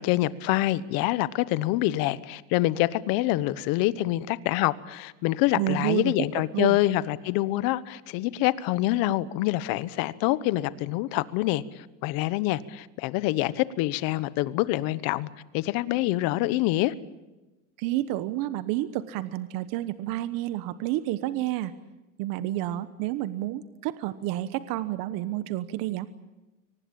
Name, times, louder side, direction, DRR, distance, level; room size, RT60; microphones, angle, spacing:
voice 1, 0.0-15.3 15.5-16.9, left 16 dB, 65° left, 16 dB, 1.2 m, -26 dB
voice 2, 5.5-6.1 6.5-6.8 17.8-21.7 22.2-26.1, right 15 dB, 65° right, 13 dB, 1.2 m, -29 dB
24.0 x 19.0 x 8.9 m, 1.1 s
supercardioid pair, 120°, 37 cm